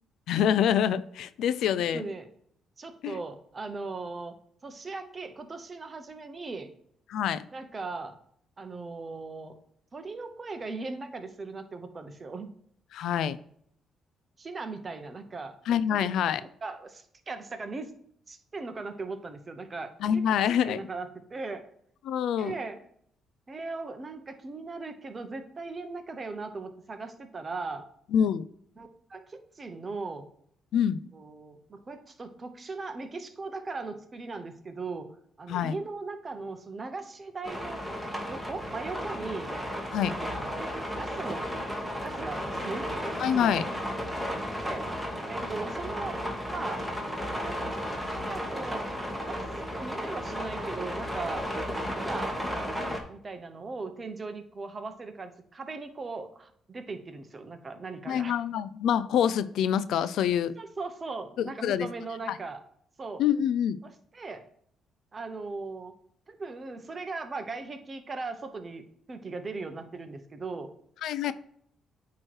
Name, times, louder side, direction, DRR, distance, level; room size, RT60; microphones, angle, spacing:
voice 1, 0.3-2.1 3.0-3.2 7.1-7.4 12.9-13.4 15.7-16.4 20.0-20.8 22.1-22.5 28.1-28.4 30.7-31.0 35.5-35.8 39.9-40.1 43.2-43.6 58.1-60.5 61.4-61.9 63.2-63.8 71.0-71.3, left 9 dB, 80° left, 0.4 m, -26 dB
voice 2, 1.8-2.3 2.8-4.3 4.6-6.7 7.5-8.2 8.6-9.6 9.9-12.5 14.4-15.6 15.9-16.1 16.6-17.9 18.3-21.7 22.4-22.8 23.5-27.8 28.8-30.3 31.1-37.9 38.3-39.5 40.0-40.5 41.0-41.5 42.0-42.9 43.2-43.8 44.6-46.2 46.5-46.8 47.5-47.8 48.1-49.4 49.7-51.4 52.0-52.4 53.1-58.4 60.5-62.6 63.0-63.2 63.8-64.4 65.1-65.9 66.3-68.8 69.1-70.7 71.3-71.4, right 3 dB, 35° right, 1.0 m, -38 dB
sound 1, 37.4-53.0, equal, ahead, 1.6 m, -34 dB
8.9 x 3.2 x 4.4 m
cardioid pair, 90°, 0 cm